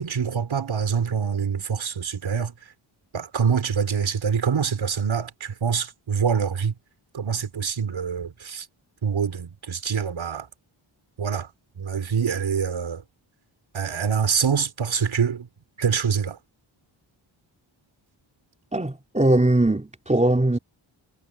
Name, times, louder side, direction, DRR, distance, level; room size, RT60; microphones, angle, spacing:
voice 1, 0.0-2.5 3.1-6.8 7.1-8.7 9.0-10.5 11.2-11.5 11.8-13.0 13.7-15.5 15.8-16.4, right 6 dB, 70° right, 4.3 m, -25 dB
voice 2, 18.7-20.6, right 1 dB, 15° right, 3.8 m, -20 dB
wide cardioid pair, 130°, 48 cm